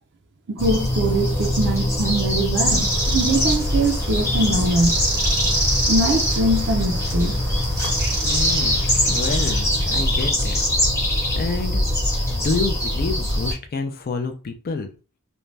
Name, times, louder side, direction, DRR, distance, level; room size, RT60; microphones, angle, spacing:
voice 1, 0.5-5.0 5.9-7.4, right 1 dB, 50° right, 0.4 m, -22 dB
sound 1, 0.6-13.5, left 1 dB, 10° left, 0.8 m, -22 dB
sound 2, 2.6-9.5, right 3 dB, 85° right, 0.8 m, -30 dB
voice 2, 8.2-10.6 11.4-11.8 12.3-14.9, left 4 dB, 40° left, 0.4 m, -28 dB
2.5 x 2.2 x 3.2 m
head